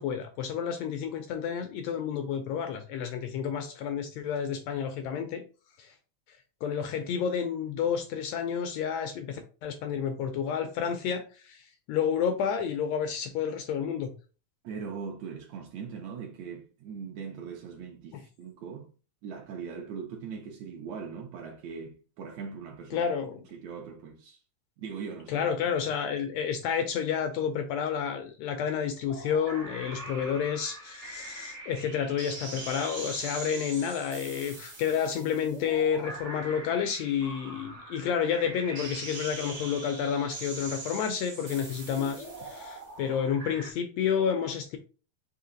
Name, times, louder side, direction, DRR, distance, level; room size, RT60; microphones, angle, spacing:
voice 1, 0.0-5.4 5.8-5.9 6.6-14.1 18.1-18.2 22.9-23.4 25.3-44.8, left 7 dB, 80° left, 1.5 m, -30 dB
voice 2, 14.6-18.9 19.2-23.1 23.3-24.4 24.8-25.4, right 6 dB, 75° right, 1.8 m, -40 dB
sound 1, 29.1-43.7, right 2 dB, 50° right, 0.8 m, -42 dB
4.9 x 2.8 x 3.8 m
omnidirectional pair, 3.5 m